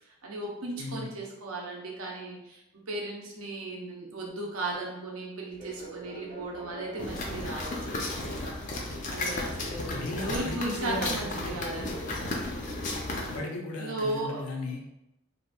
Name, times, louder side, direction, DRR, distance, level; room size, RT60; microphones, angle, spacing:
voice 1, 0.2-8.7 9.1-12.1 13.8-14.4, right 2 dB, 75° right, -1 dB, 0.7 m, -36 dB
voice 2, 0.8-1.2 9.8-11.9 13.2-14.9, left 2 dB, 85° left, 1 dB, 0.5 m, -37 dB
Fixed-wing aircraft airplane, 5.5-11.9, right 1 dB, 35° right, 0.6 m, -49 dB
sound 1, 7.0-13.4, left 2 dB, 35° left, 0.4 m, -34 dB
2.8 x 2.5 x 2.2 m, 0.89 s
head